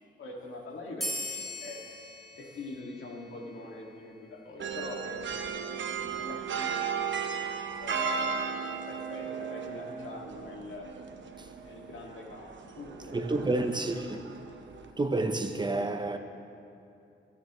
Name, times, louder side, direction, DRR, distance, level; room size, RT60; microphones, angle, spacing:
voice 1, 0.2-1.8 2.4-7.0 7.8-8.3 8.7-10.9 11.6-13.1 13.6-13.8, left 2 dB, 80° left, 2.2 m, -43 dB
sound 1, 1.0-4.0, left 1 dB, ahead, 2.7 m, -40 dB
sound 2, 4.6-14.9, right 6 dB, 65° right, 0.9 m, -36 dB
voice 2, 13.1-14.4 15.0-16.2, right 2 dB, 20° right, 0.7 m, -30 dB
27.0 x 9.3 x 3.2 m
wide cardioid pair, 120°, 20 cm